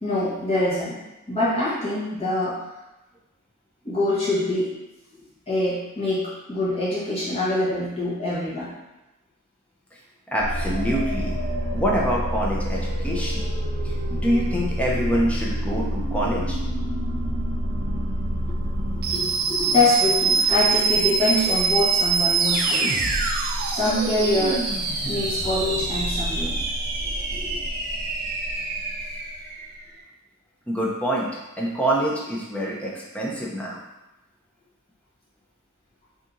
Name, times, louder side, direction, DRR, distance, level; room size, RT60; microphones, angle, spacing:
voice 1, 0.0-1.0 1.3-2.6 3.8-4.7 5.5-8.7 19.7-23.0 23.7-24.7 25.0-26.6, left 2 dB, 30° left, -9 dB, 1.1 m, -24 dB
voice 2, 10.3-11.4 11.7-13.4 13.8-16.6 19.1-19.7 27.3-27.6 30.7-31.3 31.6-33.8, equal, 5° left, -4 dB, 0.5 m, -26 dB
sound 1, 10.4-29.7, right 3 dB, 45° right, 0.4 m, -25 dB
2.7 x 2.6 x 3.7 m, 0.99 s
head